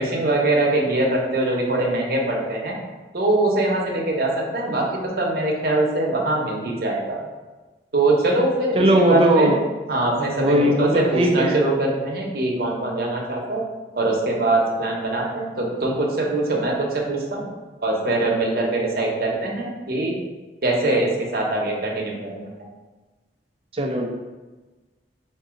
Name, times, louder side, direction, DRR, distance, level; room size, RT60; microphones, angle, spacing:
voice 1, 0.0-2.8 3.1-7.1 7.9-9.5 9.9-13.6 13.9-17.5 17.8-20.1 20.6-22.4, right 2 dB, 60° right, -2 dB, 0.8 m, -22 dB
voice 2, 8.7-9.6 10.4-11.6 23.7-24.1, right 1 dB, 30° right, 2 dB, 0.4 m, -18 dB
3.8 x 2.6 x 3.6 m, 1.2 s
head